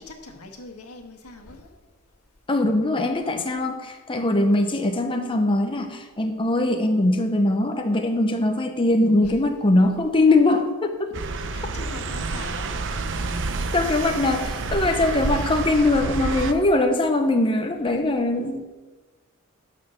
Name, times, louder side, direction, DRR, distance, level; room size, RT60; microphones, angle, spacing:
voice 1, 0.0-1.8 4.2-4.5 9.2-9.3 11.5-12.7, left 2 dB, 85° left, 3 dB, 1.6 m, -42 dB
voice 2, 2.5-11.1 13.7-18.7, left 2 dB, 25° left, 4 dB, 0.8 m, -21 dB
sound 1, 11.1-16.5, right 3 dB, 55° right, 0.8 m, -28 dB
11.5 x 5.7 x 6.9 m, 1.3 s
head